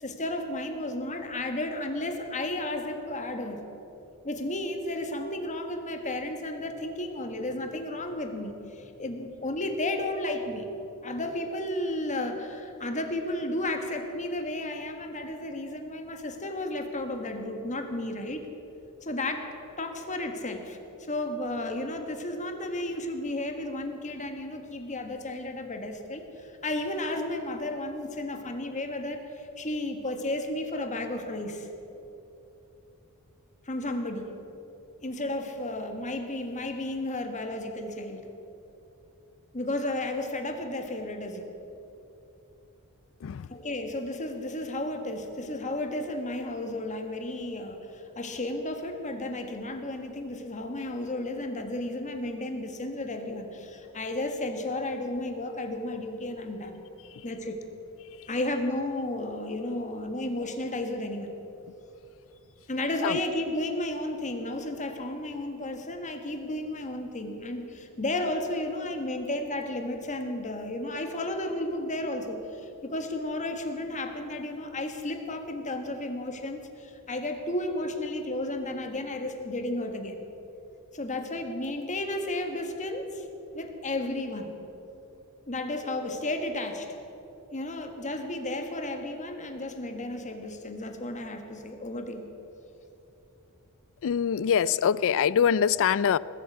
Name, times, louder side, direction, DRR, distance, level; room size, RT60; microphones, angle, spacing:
voice 1, 0.0-3.6 4.2-10.7 11.0-18.5 19.0-19.5 19.8-31.7 33.6-34.4 35.0-38.2 39.5-41.5 43.5-56.8 57.2-57.6 58.3-61.3 62.7-80.2 80.9-83.3 83.5-84.5 85.5-87.0 87.5-92.2, left 1 dB, 35° left, 5 dB, 1.5 m, -33 dB
voice 2, 94.0-96.2, left 8 dB, 60° left, 20 dB, 0.4 m, -24 dB
19.5 x 8.5 x 8.1 m, 2.9 s
head